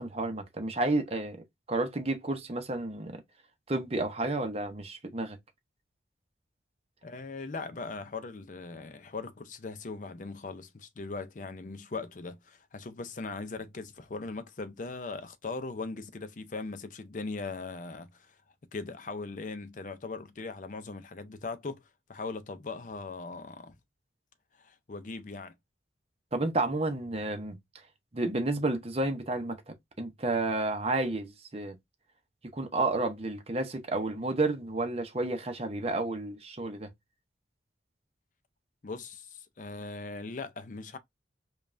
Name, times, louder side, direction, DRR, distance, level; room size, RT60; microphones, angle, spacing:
voice 1, 0.0-3.2 3.7-5.4 26.3-27.6 28.1-31.8 32.5-36.9, right 2 dB, 35° right, 0.7 m, -31 dB
voice 2, 7.0-18.4 18.7-21.8 22.1-23.8 24.5-25.5 38.8-41.0, left 3 dB, 45° left, 0.5 m, -39 dB
5.1 x 2.3 x 2.5 m
head